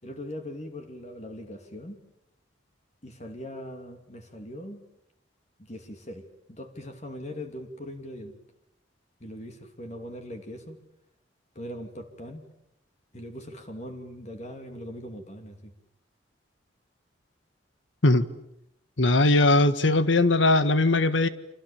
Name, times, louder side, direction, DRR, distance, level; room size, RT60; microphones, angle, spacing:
voice 1, 0.0-2.0 3.0-4.8 5.6-8.3 9.2-10.8 11.5-12.5 13.1-15.7, left 1 dB, 35° left, 5 dB, 2.7 m, -40 dB
voice 2, 19.0-21.3, left 2 dB, 80° left, 12 dB, 1.6 m, -20 dB
30.0 x 26.0 x 7.2 m, 0.78 s
head